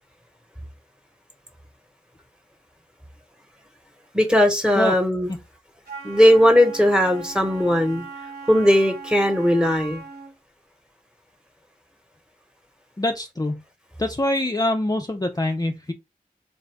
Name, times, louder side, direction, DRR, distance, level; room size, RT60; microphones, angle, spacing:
voice 1, 4.1-5.3 6.0-8.0 8.5-10.0, equal, 5° right, 1.2 m, -18 dB
Wind instrument woodwind instrument, 5.8-10.4, right 4 dB, 80° right, 2.5 m, -38 dB
voice 2, 13.0-13.6 14.0-15.9, left 1 dB, 25° left, 0.5 m, -24 dB
4.1 x 2.5 x 3.4 m
wide cardioid pair, 50°, 16 cm